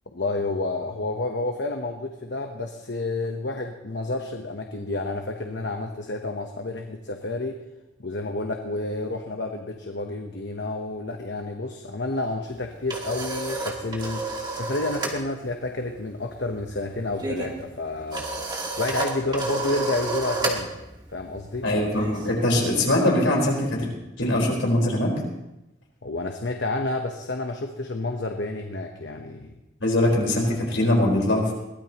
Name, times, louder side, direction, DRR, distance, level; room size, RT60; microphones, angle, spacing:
voice 1, 0.1-7.6 8.0-18.5 18.8-20.7 21.1-21.7 26.0-29.6, left 2 dB, 65° left, 4 dB, 1.0 m, -30 dB
sound 1, 12.5-15.2 15.5-22.7, right 2 dB, 20° right, 1.8 m, -31 dB
voice 2, 21.6-23.9 24.2-25.1 29.8-31.5, left 1 dB, 80° left, -2 dB, 4.7 m, -22 dB
22.0 x 16.0 x 3.0 m, 0.96 s
head